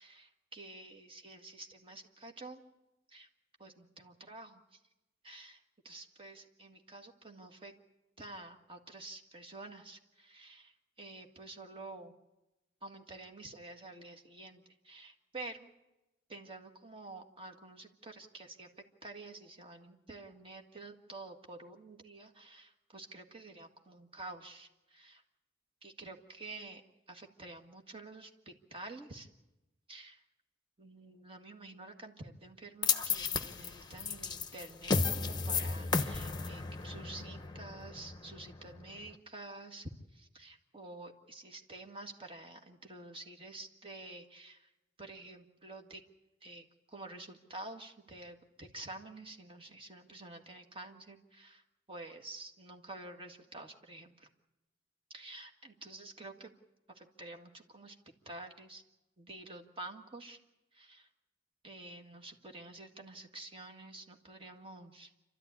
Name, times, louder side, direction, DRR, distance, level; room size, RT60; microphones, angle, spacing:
voice 1, 0.0-2.6 3.1-3.3 3.6-4.8 5.2-7.7 8.2-12.1 12.8-15.7 16.3-18.7 19.0-25.2 25.8-26.8 27.1-29.3 29.9-30.2 30.8-44.7 45.0-46.0 46.4-51.6 51.9-54.3 55.1-56.5 56.9-57.9 58.2-58.8 59.2-60.4 60.7-61.1 61.6-65.1, right 2 dB, 30° right, 4 dB, 1.8 m, -49 dB
sound 1, 32.8-39.1, left 4 dB, 20° left, 1.0 m, -34 dB
28.0 x 13.0 x 9.6 m, 1.0 s
head